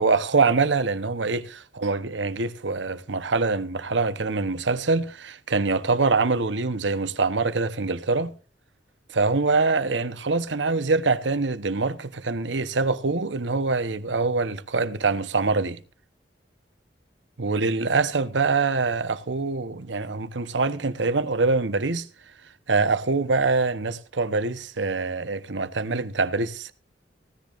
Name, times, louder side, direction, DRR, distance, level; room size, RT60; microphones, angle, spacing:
voice 1, 0.0-8.3 9.1-15.8 17.4-22.1 22.7-26.7, right 3 dB, 85° right, 1.0 m, -24 dB
17.5 x 13.5 x 2.6 m
head